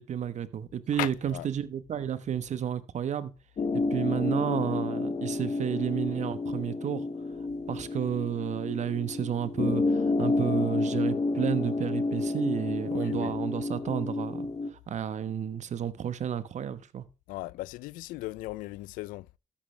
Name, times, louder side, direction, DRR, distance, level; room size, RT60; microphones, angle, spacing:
voice 1, 0.0-3.3 3.7-7.0 7.7-14.4 14.9-17.0, right 9 dB, 60° right, 1.2 m, -31 dB
voice 2, 0.9-1.5 12.9-13.4 17.3-19.4, left 18 dB, 90° left, 0.4 m, -37 dB
sound 1, 3.6-14.7, left 3 dB, 50° left, 2.0 m, -30 dB
13.0 x 10.0 x 3.3 m
supercardioid pair, 65°, 14 cm